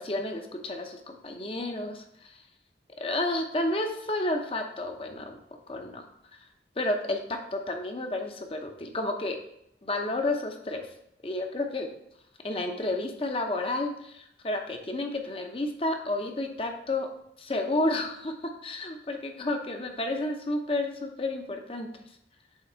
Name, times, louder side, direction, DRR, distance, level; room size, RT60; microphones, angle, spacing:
voice 1, 0.0-2.4 3.0-5.4 5.7-6.0 6.8-9.4 9.8-10.8 11.2-11.9 12.4-17.1 17.4-18.3 18.6-21.9, left 2 dB, 30° left, 4 dB, 0.7 m, -31 dB
7.5 x 3.5 x 4.4 m, 0.76 s
head